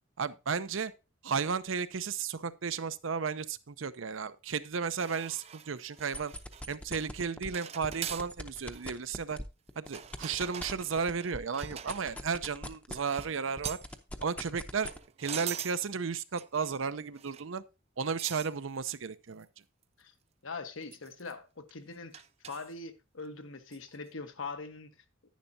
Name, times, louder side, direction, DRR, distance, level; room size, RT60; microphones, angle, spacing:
voice 1, 0.2-0.9 1.2-6.3 6.7-9.4 9.8-13.8 14.2-14.9 15.2-17.6 18.0-19.5, right 5 dB, 80° right, 0.6 m, -34 dB
sound 1, 5.0-6.6 7.0-7.3 7.5-8.3 8.7-8.9 9.8-12.3 12.9-13.3 13.6-13.9 14.7-15.8 16.4-16.8 17.2-17.5 18.2-18.5 18.9-19.0 19.4-19.5 19.8-19.9 20.9-21.3 22.1-22.7 23.7-23.9, right 9 dB, 30° right, 0.4 m, -43 dB
sound 2, 6.0-7.5 7.8-13.3 13.6-15.0, left 1 dB, 5° left, 0.6 m, -41 dB
voice 2, 20.4-24.9, left 4 dB, 80° left, 1.2 m, -42 dB
10.5 x 10.0 x 2.7 m
head